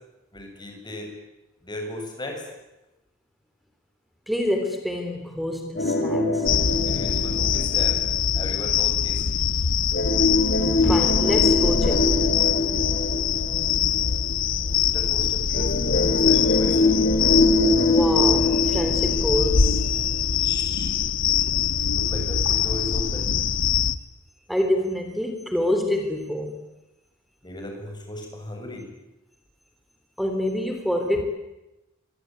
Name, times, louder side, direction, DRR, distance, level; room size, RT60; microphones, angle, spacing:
voice 1, 0.3-1.1 1.6-2.4 6.8-8.0 8.3-9.2 14.8-17.1 20.4-20.9 21.8-23.3 27.4-28.9, left 1 dB, 20° left, 2 dB, 7.6 m, -36 dB
voice 2, 4.3-6.5 10.8-12.1 17.6-20.0 20.3-20.4 24.5-26.6 30.2-31.2, left 1 dB, ahead, 5 dB, 3.2 m, -27 dB
sound 1, 5.8-8.4 9.9-14.3 15.5-20.4 20.8-20.9 21.5-21.6, left 2 dB, 55° left, 3.0 m, -23 dB
sound 2, 6.5-24.0, left 7 dB, 70° left, 1.0 m, -23 dB
26.5 x 24.0 x 9.3 m, 0.98 s
head